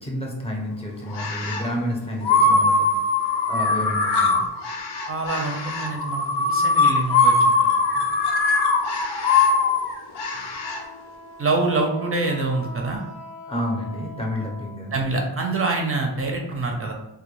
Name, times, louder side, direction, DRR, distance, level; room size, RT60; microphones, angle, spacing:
voice 1, 0.0-2.9 3.5-4.5 13.5-15.0, equal, 15° left, -1 dB, 0.6 m, -30 dB
sound 1, 1.1-1.7 2.2-10.8, left 3 dB, 60° left, 0.6 m, -21 dB
voice 2, 5.1-7.8 11.4-13.0 14.9-16.9, right 3 dB, 30° right, 2 dB, 0.4 m, -25 dB
Wind instrument woodwind instrument, 10.6-15.1, left 2 dB, 85° left, 0.9 m, -41 dB
2.2 x 2.1 x 3.0 m, 0.94 s
cardioid pair, 70°, 45 cm